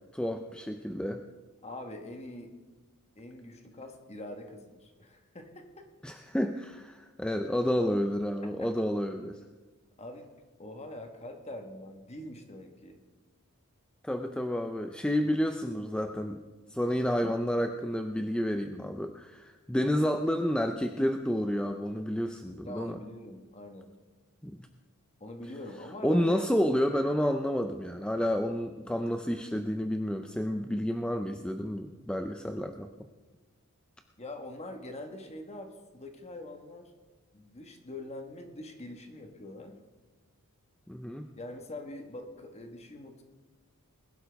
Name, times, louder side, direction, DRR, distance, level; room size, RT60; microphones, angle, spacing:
voice 1, 0.1-1.2 6.0-9.4 14.0-16.4 16.7-23.0 24.4-24.7 26.0-32.9 40.9-41.3, equal, 5° left, 6 dB, 0.4 m, -30 dB
voice 2, 1.6-2.5 3.1-5.9 8.4-8.7 10.0-10.3 10.6-13.0 15.2-15.3 22.6-23.9 25.2-26.5 34.2-36.9 37.3-39.8 41.4-43.2, left 1 dB, 30° left, 4 dB, 1.4 m, -43 dB
20.5 x 12.0 x 3.5 m, 1.3 s
head